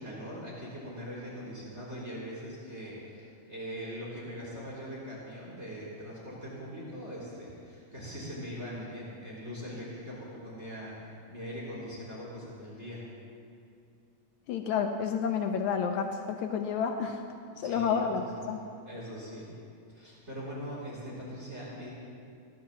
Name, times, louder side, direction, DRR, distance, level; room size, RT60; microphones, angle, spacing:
voice 1, 0.0-13.0 17.5-18.4 18.8-19.5 19.9-21.9, equal, 20° right, -6 dB, 3.8 m, -41 dB
voice 2, 14.5-17.2 17.6-18.6, left 6 dB, 80° left, 5 dB, 2.2 m, -30 dB
16.0 x 12.0 x 7.4 m, 2.4 s
omnidirectional pair, 3.4 m